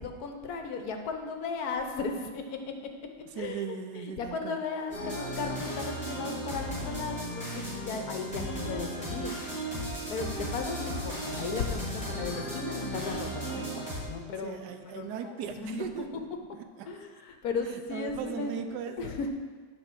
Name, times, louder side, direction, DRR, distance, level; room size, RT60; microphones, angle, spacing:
voice 1, 0.0-2.7 3.3-9.3 10.1-15.9 16.8-18.6 19.0-19.3, left 4 dB, 70° left, 5 dB, 1.3 m, -36 dB
voice 2, 3.4-4.6 14.2-16.3 16.5-16.9 17.9-19.2, right 7 dB, 90° right, 7 dB, 1.3 m, -38 dB
sound 1, 4.9-14.0, equal, 5° left, 2.7 m, -35 dB
8.8 x 4.9 x 6.0 m, 1.5 s
omnidirectional pair, 1.7 m